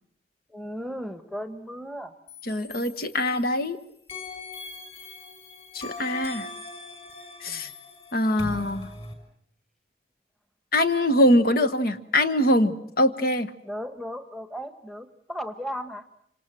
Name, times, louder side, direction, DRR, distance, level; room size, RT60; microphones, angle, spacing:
voice 1, 0.5-2.1 7.5-7.7 13.6-16.0, equal, ahead, 9 dB, 1.3 m, -36 dB
sound 1, 2.3-3.7 4.1-9.1, left 2 dB, 30° left, 6.1 m, -40 dB
voice 2, 2.5-3.8 5.7-6.5 7.4-7.7 8.1-8.9 10.7-13.5, left 1 dB, 50° left, 9 dB, 1.3 m, -23 dB
27.0 x 26.0 x 7.6 m, 0.69 s
head